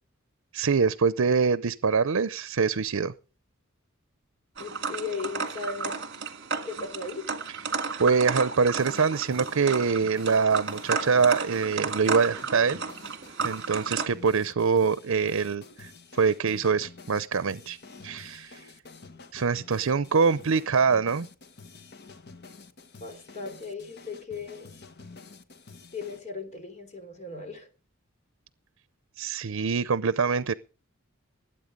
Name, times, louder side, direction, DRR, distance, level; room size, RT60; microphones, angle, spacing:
voice 1, 0.5-3.1 8.0-12.8 13.4-15.9 16.2-17.8 18.0-18.6 19.3-21.3 29.2-30.5, right 5 dB, 85° right, 0.7 m, -24 dB
voice 2, 4.6-6.0 6.6-7.2 23.0-24.7 25.9-27.7, left 4 dB, 35° left, 3.5 m, -37 dB
sound 1, 4.6-14.1, right 5 dB, 55° right, 1.9 m, -33 dB
sound 2, 8.7-26.2, left 4 dB, 55° left, 1.4 m, -49 dB
20.0 x 8.7 x 5.3 m
head